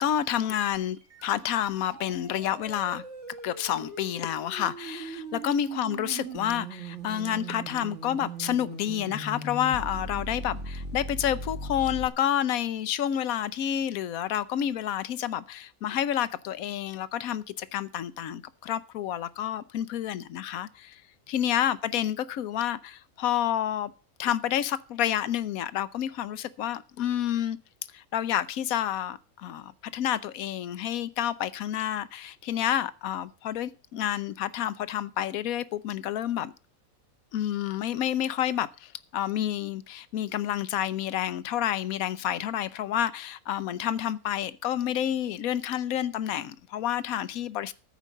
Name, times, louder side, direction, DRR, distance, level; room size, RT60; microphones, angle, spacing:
voice 1, 0.0-3.0 3.4-21.0 21.3-23.9 24.2-27.6 27.9-36.5 37.3-47.7, left 11 dB, 75° left, 1.2 m, -29 dB
sound 1, 0.7-12.1, right 2 dB, 55° right, 2.0 m, -39 dB
13.5 x 5.1 x 7.5 m
omnidirectional pair, 1.5 m